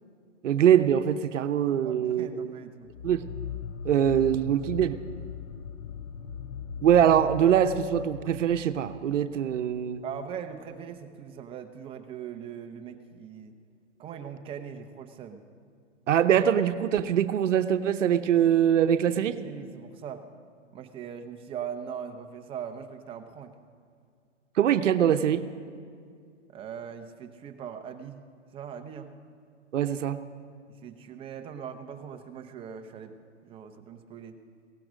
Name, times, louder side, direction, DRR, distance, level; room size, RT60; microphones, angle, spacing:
voice 1, 0.4-2.6 3.0-3.3 3.8-5.0 6.8-10.0 16.1-19.4 24.6-25.4 29.7-30.2, right 9 dB, 75° right, 10 dB, 0.8 m, -23 dB
voice 2, 1.8-2.9 6.2-6.3 10.0-13.5 14.0-15.4 19.1-20.2 20.7-23.5 26.5-28.2 28.5-29.1 30.8-33.1 33.4-34.4, right 8 dB, 15° right, 6 dB, 0.6 m, -40 dB
sound 1, 2.9-10.2, left 7 dB, 35° left, 0.5 m, -40 dB
17.0 x 16.0 x 5.0 m, 2.2 s
hypercardioid pair, 135°, 37 cm